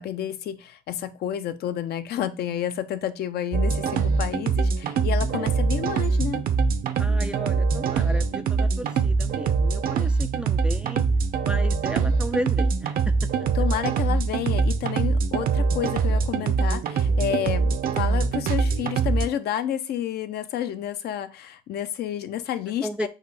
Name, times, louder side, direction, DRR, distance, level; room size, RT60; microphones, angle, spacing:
voice 1, 0.0-6.4 13.5-23.1, left 10 dB, 55° left, 11 dB, 0.6 m, -30 dB
sound 1, 3.5-19.3, right 5 dB, 45° right, 0.6 m, -23 dB
voice 2, 7.0-11.0 11.4-13.3 22.8-23.1, equal, 5° right, 8 dB, 0.3 m, -34 dB
6.4 x 2.5 x 3.3 m, 0.31 s
supercardioid pair, 85°, 20 cm